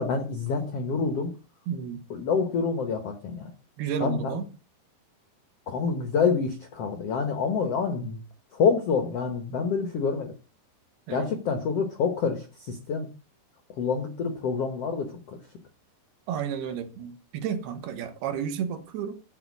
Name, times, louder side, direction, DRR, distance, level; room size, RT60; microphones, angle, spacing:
voice 1, 0.0-1.3 2.1-3.5 4.0-4.4 5.7-8.2 8.5-10.3 11.1-13.1 13.8-15.4, left 5 dB, 90° left, 1.3 m, -27 dB
voice 2, 1.7-2.0 3.8-4.5 11.1-11.3 16.3-19.1, right 8 dB, 75° right, 2.9 m, -32 dB
12.5 x 4.5 x 8.4 m
omnidirectional pair, 4.7 m